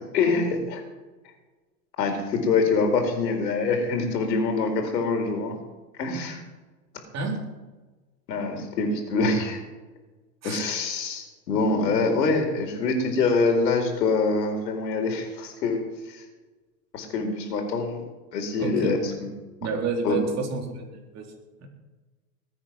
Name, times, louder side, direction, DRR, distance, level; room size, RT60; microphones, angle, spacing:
voice 1, 0.1-0.8 2.0-5.5 5.9-6.4 8.3-9.6 10.4-15.8 16.1-16.2 16.9-18.0 18.3-19.1 20.0-20.3, left 3 dB, 80° left, 4 dB, 4.4 m, -25 dB
voice 2, 18.6-19.2 19.6-21.3 21.6-21.7, right 4 dB, 30° right, 1 dB, 4.0 m, -30 dB
20.5 x 8.7 x 6.1 m, 1.2 s
hypercardioid pair, 120°, 49 cm